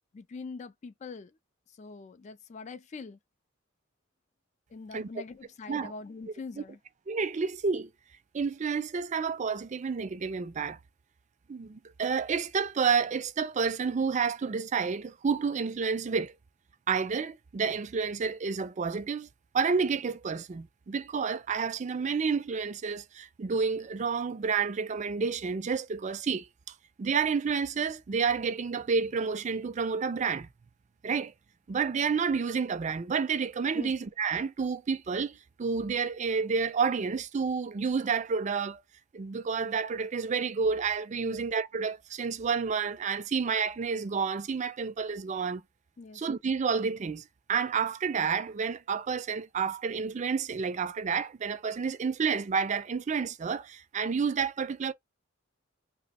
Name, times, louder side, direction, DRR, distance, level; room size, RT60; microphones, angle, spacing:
voice 1, 0.0-1.4 1.7-3.2 4.7-6.8 33.7-33.9 41.2-41.4 46.0-46.2, left 4 dB, 35° left, 0.3 m, -43 dB
voice 2, 7.1-7.9 8.3-10.8 11.5-16.3 16.9-19.3 19.5-26.5 27.0-30.5 31.0-31.3 31.7-38.8 39.1-45.6 46.1-54.9, right 5 dB, 35° right, 0.4 m, -30 dB
2.9 x 2.1 x 4.1 m
head